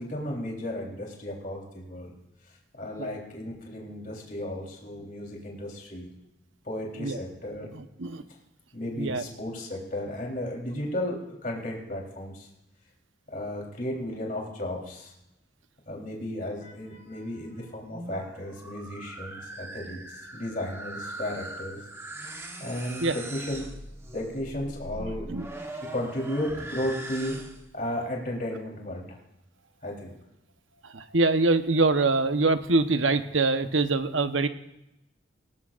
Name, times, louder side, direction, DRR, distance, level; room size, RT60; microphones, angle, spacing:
voice 1, 0.0-2.1 2.8-6.1 6.6-7.7 8.7-12.5 13.3-15.1 15.9-21.8 22.6-23.7 24.1-25.3 25.9-27.3 27.7-29.2 29.8-30.1, left 1 dB, 45° left, -1 dB, 3.6 m, -34 dB
sound 1, 17.8-27.8, right 1 dB, 15° right, 1.2 m, -41 dB
voice 2, 25.0-25.4 30.9-34.5, right 3 dB, 90° right, 9 dB, 1.0 m, -24 dB
18.5 x 18.5 x 2.5 m, 0.88 s
head